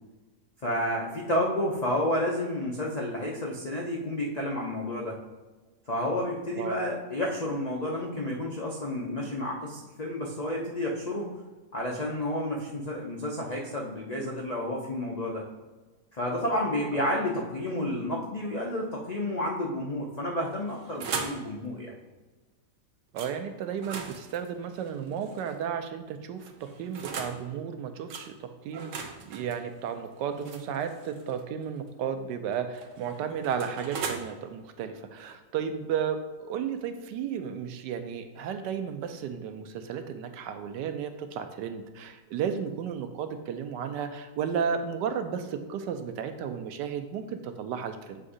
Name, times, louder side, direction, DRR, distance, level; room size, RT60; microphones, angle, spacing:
voice 1, 0.6-5.1 5.9-11.3 11.7-15.4 16.1-22.0, left 1 dB, 70° left, -2 dB, 0.3 m, -30 dB
sound 1, 20.5-21.5 23.2-23.3 23.7-25.6 26.4-27.4 28.1-28.3 28.7-31.4 32.5-34.2, right 5 dB, 60° right, 0.8 m, -39 dB
voice 2, 23.1-48.2, right 7 dB, 90° right, 8 dB, 1.2 m, -33 dB
7.4 x 2.6 x 4.8 m, 1.2 s
omnidirectional pair, 1.8 m